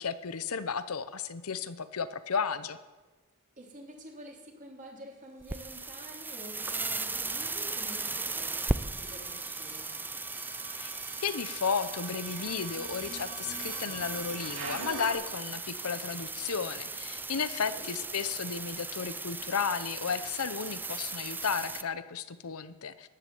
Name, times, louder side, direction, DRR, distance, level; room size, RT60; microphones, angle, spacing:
voice 1, 0.0-2.8 10.7-23.1, left 6 dB, 80° left, 13 dB, 0.8 m, -34 dB
voice 2, 3.6-9.9 17.6-17.9, equal, 35° right, 0 dB, 3.3 m, -48 dB
sound 1, 5.4-21.8, right 3 dB, 10° right, 0.4 m, -37 dB
sound 2, 6.2-15.1, right 3 dB, 65° right, 2.9 m, -46 dB
13.0 x 10.5 x 7.9 m, 1.2 s
head